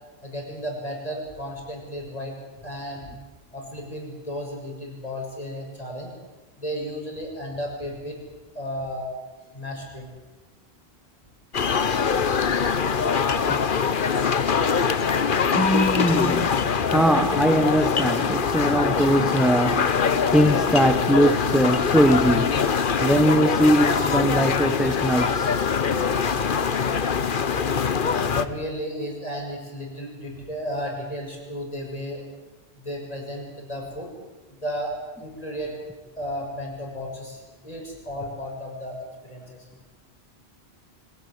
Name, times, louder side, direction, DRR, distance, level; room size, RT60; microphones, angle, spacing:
voice 1, 0.2-3.1 3.5-6.1 6.6-8.2 8.5-9.1 9.5-10.1 22.2-22.3 28.3-32.2 32.7-34.1 34.5-35.7 36.2-39.0 39.2-39.7, equal, 35° left, 6.5 m, -33 dB
sound 1, 11.5-28.5, left 6 dB, 55° left, 1.1 m, -23 dB
voice 2, 15.5-22.5 23.0-25.6, right 1 dB, ahead, 1.0 m, -21 dB
24.0 x 17.0 x 9.6 m
omnidirectional pair, 1.1 m